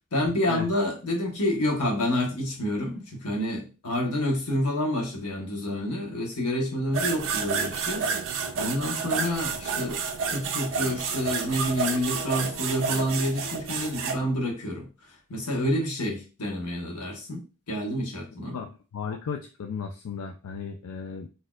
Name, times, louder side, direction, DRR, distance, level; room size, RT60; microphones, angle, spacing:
voice 1, 0.1-8.0 8.5-10.0 10.3-14.9 15.3-18.6, left 1 dB, 90° left, 0 dB, 1.1 m, -28 dB
sound 1, 6.9-14.2, right 5 dB, 60° right, 0.5 m, -30 dB
voice 2, 18.5-21.3, left 6 dB, 70° left, 5 dB, 0.4 m, -35 dB
4.1 x 2.8 x 2.3 m, 0.33 s
head